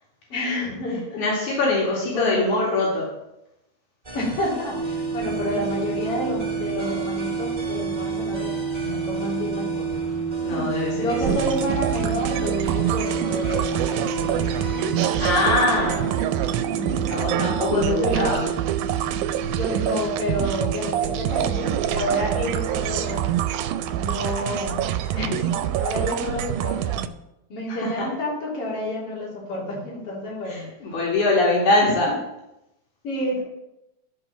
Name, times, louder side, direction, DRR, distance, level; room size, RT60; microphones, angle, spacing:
voice 1, 0.3-1.2 2.1-2.4 4.1-9.9 10.5-10.7 10.9-15.0 16.7-18.3 19.6-23.3 24.0-24.8 25.1-27.1 27.5-30.6 31.8-31.9 33.0-33.4, left 1 dB, 50° left, -6 dB, 4.3 m, -29 dB
voice 2, 1.2-3.1 10.4-11.2 15.2-16.2 17.1-18.4 27.7-28.1 30.5-32.1, left 2 dB, 80° left, -5 dB, 3.7 m, -23 dB
sound 1, 4.0-15.3, equal, 10° right, 2.5 m, -39 dB
sound 2, 4.7-24.0, right 5 dB, 55° right, 1.5 m, -30 dB
sound 3, 11.2-27.1, right 12 dB, 90° right, 2.0 m, -26 dB
11.5 x 5.1 x 6.0 m, 0.89 s
omnidirectional pair, 3.4 m